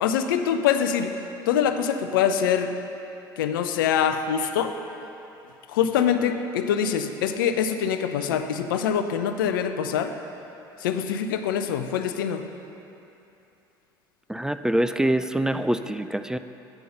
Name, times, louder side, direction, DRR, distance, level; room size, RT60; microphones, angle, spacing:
voice 1, 0.0-1.2 1.5-2.7 3.4-4.7 5.7-10.1 10.8-12.4, left 8 dB, 80° left, 8 dB, 0.5 m, -24 dB
voice 2, 14.3-16.4, right 1 dB, 5° right, 10 dB, 0.3 m, -25 dB
8.9 x 5.4 x 5.7 m, 2.9 s
hypercardioid pair, 65°, 11 cm